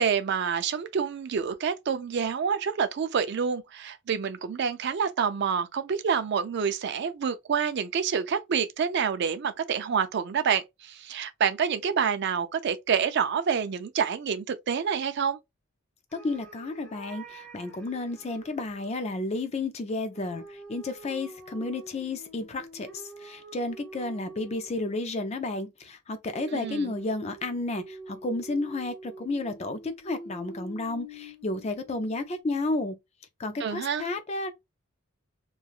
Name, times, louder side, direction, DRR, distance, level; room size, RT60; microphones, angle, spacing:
voice 1, 0.0-15.4 26.5-26.9 33.6-34.0, right 6 dB, 55° right, 0.4 m, -27 dB
voice 2, 16.1-33.0 33.4-34.5, left 2 dB, 30° left, 0.4 m, -32 dB
sound 1, 16.1-19.1 20.1-24.9 26.3-32.4, right 2 dB, 5° left, 1.1 m, -46 dB
3.2 x 2.2 x 2.4 m
head